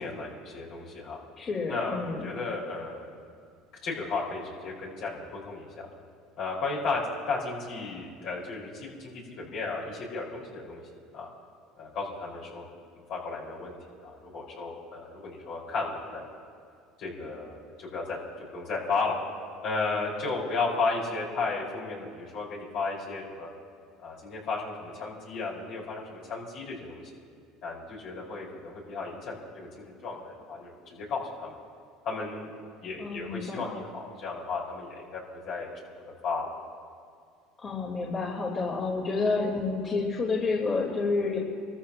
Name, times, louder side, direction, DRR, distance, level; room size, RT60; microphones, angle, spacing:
voice 1, 0.0-1.2 1.7-3.1 3.8-5.9 6.4-7.0 7.3-10.8 11.1-11.3 11.8-12.7 13.1-13.8 14.0-16.2 17.0-18.2 18.5-19.2 19.6-23.5 24.0-27.0 27.6-31.6 32.0-32.5 32.8-35.7 36.2-36.5, left 4 dB, 60° left, -4 dB, 5.1 m, -34 dB
voice 2, 1.4-2.3 33.0-33.7 37.6-41.4, left 4 dB, 40° left, -5 dB, 3.3 m, -29 dB
29.0 x 14.5 x 3.0 m, 2.2 s
supercardioid pair, 95°, 0 cm